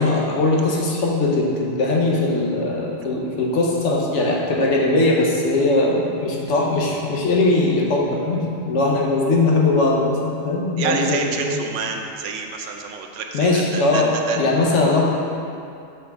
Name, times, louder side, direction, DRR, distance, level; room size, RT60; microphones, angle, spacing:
voice 1, 0.0-11.6 13.3-15.1, left 2 dB, 75° left, -2 dB, 1.2 m, -20 dB
voice 2, 10.8-14.4, right 5 dB, 90° right, 3 dB, 0.9 m, -28 dB
5.9 x 5.3 x 3.5 m, 2.5 s
omnidirectional pair, 1.2 m